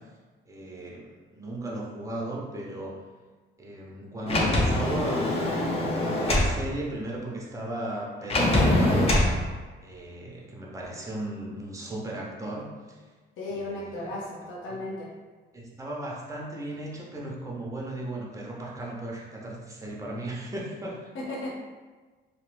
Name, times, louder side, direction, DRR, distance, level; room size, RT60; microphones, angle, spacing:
voice 1, 0.5-2.9 3.6-9.5 9.8-13.0 13.5-14.1 15.5-21.1, right 1 dB, 15° right, -3 dB, 0.6 m, -36 dB
Sliding door, 4.3-6.5 8.3-9.3, left 1 dB, 30° left, 0.5 m, -23 dB
voice 2, 13.4-15.1 21.1-21.5, left 2 dB, 85° left, -5 dB, 0.6 m, -35 dB
2.4 x 2.1 x 3.1 m, 1.3 s
cardioid pair, 90°, 20 cm